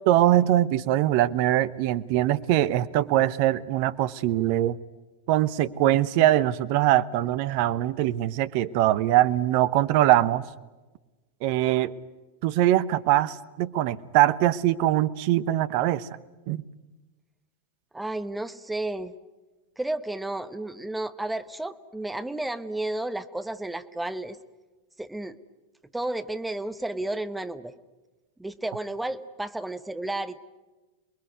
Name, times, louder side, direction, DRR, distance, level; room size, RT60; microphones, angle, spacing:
voice 1, 0.0-4.8 5.3-10.4 11.4-11.9 12.4-16.1 16.5-16.6, right 14 dB, 45° right, 0.9 m, -22 dB
voice 2, 17.9-19.1 19.8-24.4 25.0-25.4 25.9-27.7 28.4-30.4, right 2 dB, 5° right, 1.2 m, -32 dB
28.0 x 21.0 x 9.5 m
figure-of-eight pair, 90°, 0 cm